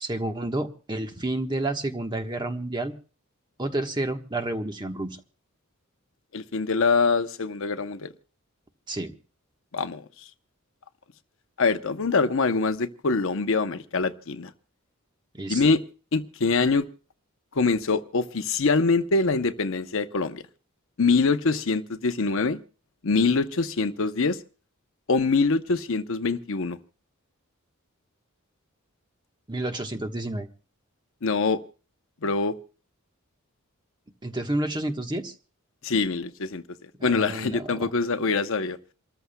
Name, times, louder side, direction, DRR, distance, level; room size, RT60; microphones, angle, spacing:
voice 1, 0.0-2.9 3.6-5.2 8.9-9.1 15.3-15.6 29.5-30.5 34.2-35.3 37.0-37.9, right 1 dB, 20° right, 5 dB, 1.2 m, -30 dB
voice 2, 6.3-8.1 9.7-10.0 11.6-14.5 15.5-15.8 16.1-16.9 17.5-20.4 21.0-22.6 23.0-24.4 25.1-26.8 31.2-31.6 32.2-32.5 35.8-36.6 37.0-38.8, left 4 dB, 60° left, 9 dB, 0.8 m, -24 dB
28.5 x 14.0 x 2.2 m, 0.36 s
head